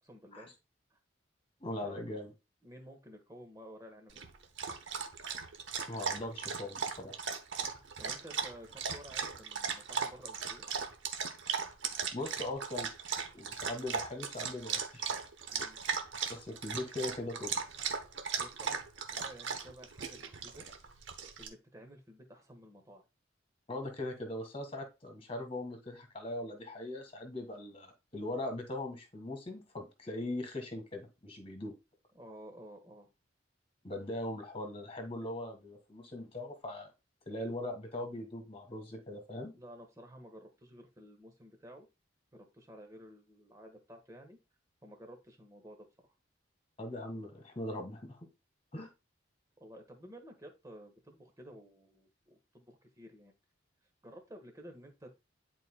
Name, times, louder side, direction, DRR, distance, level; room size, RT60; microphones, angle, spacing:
voice 1, 0.0-0.5 0.9-1.0 1.7-2.0 2.6-4.3 7.5-10.7 15.4-15.8 18.4-18.8 19.1-20.7 21.4-23.1 32.1-33.1 39.5-41.9 42.3-44.4 44.8-46.1 49.6-53.3 54.0-55.1, equal, 15° right, 4 dB, 1.3 m, -53 dB
voice 2, 1.6-2.3 5.9-7.1 12.1-12.9 13.3-15.0 16.3-17.5 23.7-31.7 33.8-36.9 37.3-39.5 46.8-48.2 48.7-48.9, left 1 dB, 30° left, 4 dB, 1.7 m, -40 dB
Dog, 4.1-21.5, right 6 dB, 70° right, 1.0 m, -38 dB
10.5 x 4.4 x 2.2 m, 0.26 s
head